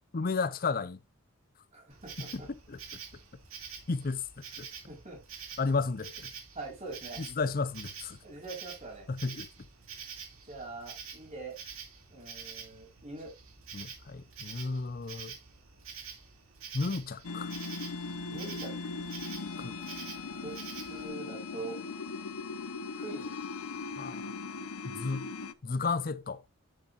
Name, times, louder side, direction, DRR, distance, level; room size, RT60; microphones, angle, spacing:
voice 1, 0.1-1.0 2.3-2.8 3.9-4.7 5.6-6.3 7.2-8.2 9.1-9.5 13.7-15.4 16.7-17.5 19.6-19.8 24.0-24.5 24.8-25.3 25.6-26.4, left 4 dB, 40° left, 0.6 m, -33 dB
voice 2, 1.7-2.5 4.9-5.2 6.5-7.2 8.2-9.1 10.5-11.6 12.1-13.3 18.3-19.0 20.3-20.6 20.8-21.8 22.9-23.3, right 3 dB, 35° right, 4.2 m, -43 dB
Insect, 1.9-21.1, right 7 dB, 75° right, 2.5 m, -47 dB
sound 1, 17.2-25.5, left 4 dB, 85° left, 0.7 m, -39 dB
9.7 x 7.3 x 2.5 m
head